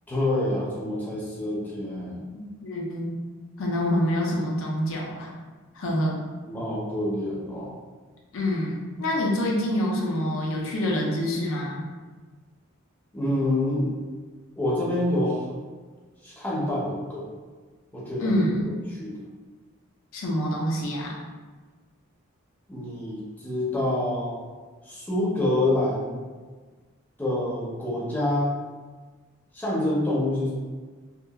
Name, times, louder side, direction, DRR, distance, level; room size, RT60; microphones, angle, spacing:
voice 1, 0.1-2.3 6.4-7.7 13.1-14.0 14.6-15.5 16.2-17.3 17.9-18.3 18.9-19.2 22.7-24.4 24.8-26.2 27.2-28.5 29.5-30.5, left 1 dB, 10° left, -7 dB, 0.5 m, -27 dB
voice 2, 2.3-3.2 3.6-5.3 5.7-6.2 8.3-11.9 18.2-18.8 20.1-21.1, left 1 dB, 65° left, -2 dB, 0.4 m, -26 dB
2.8 x 2.1 x 2.2 m, 1.4 s
head